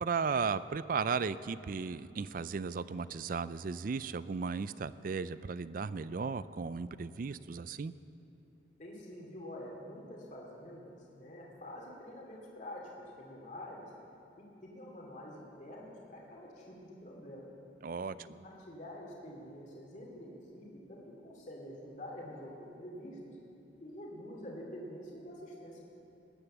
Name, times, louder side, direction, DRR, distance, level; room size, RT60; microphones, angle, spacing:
voice 1, 0.0-7.9 17.8-18.4, right 5 dB, 45° right, 16 dB, 0.4 m, -35 dB
voice 2, 8.8-13.9 14.4-17.4 18.2-23.4 23.8-25.8, left 1 dB, 40° left, -2 dB, 2.5 m, -47 dB
19.0 x 10.0 x 7.3 m, 2.8 s
head